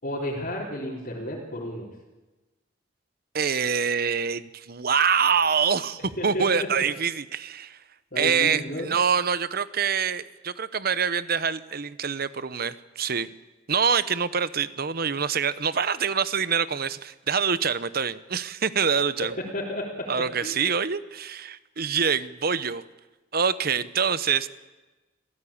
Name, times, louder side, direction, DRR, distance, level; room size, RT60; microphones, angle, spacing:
voice 1, 0.0-1.9 6.2-6.8 8.1-8.9 19.5-20.1 20.4-20.6, left 1 dB, 50° left, -6 dB, 4.0 m, -32 dB
voice 2, 3.3-7.8 8.2-13.3 13.7-19.3 20.1-22.8 23.3-24.5, right 6 dB, 50° right, 15 dB, 0.9 m, -25 dB
26.5 x 16.0 x 8.7 m, 1.2 s
head